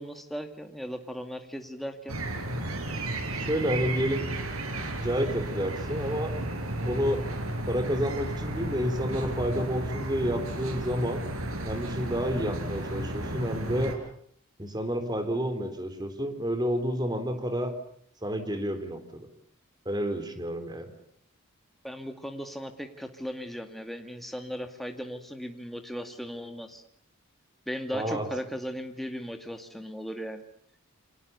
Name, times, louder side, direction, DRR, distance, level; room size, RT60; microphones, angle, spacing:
voice 1, 0.0-2.2 21.8-26.8 27.7-30.4, equal, ahead, 5 dB, 2.2 m, -37 dB
sound 1, 2.1-14.0, right 1 dB, 85° right, 5.1 m, -33 dB
voice 2, 3.4-4.2 5.0-6.3 6.8-7.2 7.7-11.2 11.6-13.9 14.6-17.7 18.2-19.3 19.9-20.9 27.9-28.3, equal, 20° right, 9 dB, 3.6 m, -30 dB
29.5 x 25.5 x 6.9 m, 0.65 s
head